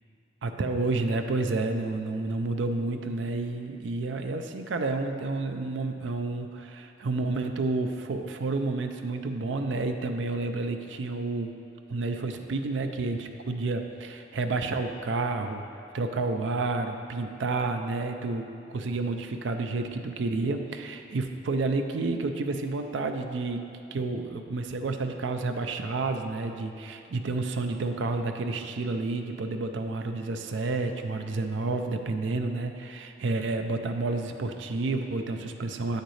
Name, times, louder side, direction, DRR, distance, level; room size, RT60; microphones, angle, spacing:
voice 1, 0.4-11.5 11.9-15.6 15.9-36.0, right 3 dB, 90° right, 6 dB, 0.4 m, -30 dB
7.8 x 6.5 x 3.2 m, 2.7 s
head